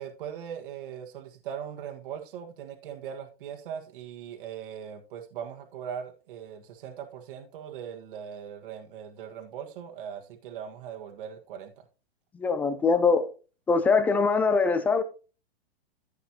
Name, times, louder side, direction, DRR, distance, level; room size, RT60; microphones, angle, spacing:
voice 1, 0.0-11.7, right 8 dB, 55° right, 1.6 m, -40 dB
voice 2, 12.3-13.2 13.7-15.0, left 4 dB, 5° left, 0.3 m, -22 dB
14.5 x 5.7 x 2.8 m
hypercardioid pair, 140°, 31 cm